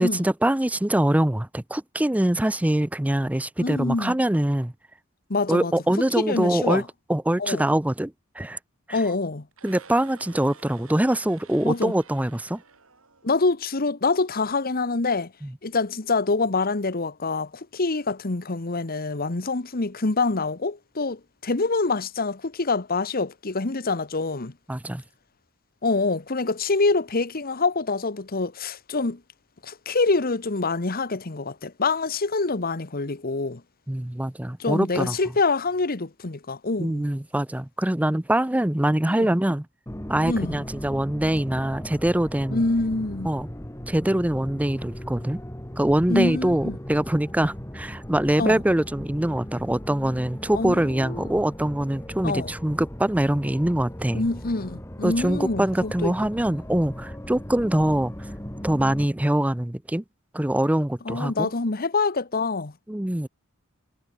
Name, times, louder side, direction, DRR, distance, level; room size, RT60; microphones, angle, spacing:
voice 1, 0.0-4.7 5.5-6.8 7.1-8.6 8.9-9.0 9.6-12.6 15.4-15.5 24.7-25.0 33.9-35.2 36.8-39.7 40.1-42.6 43.2-43.5 43.9-45.4 45.8-54.3 55.0-58.1 58.6-60.0 60.3-61.5 62.9-63.3, right 1 dB, 5° right, 0.5 m, -24 dB
voice 2, 3.6-4.2 5.3-5.7 6.2-6.8 7.4-7.7 8.9-9.5 11.6-11.9 13.2-15.3 15.6-24.5 25.8-29.2 29.6-33.6 34.6-37.1 39.1-39.3 40.2-40.6 42.5-43.3 46.1-46.8 48.4-48.6 50.5-51.2 52.2-52.5 54.1-56.1 61.0-62.7, left 3 dB, 45° left, 1.2 m, -26 dB
sound 1, 9.5-13.7, right 5 dB, 85° right, 7.0 m, -51 dB
sound 2, 39.9-59.1, equal, 15° left, 2.2 m, -38 dB
head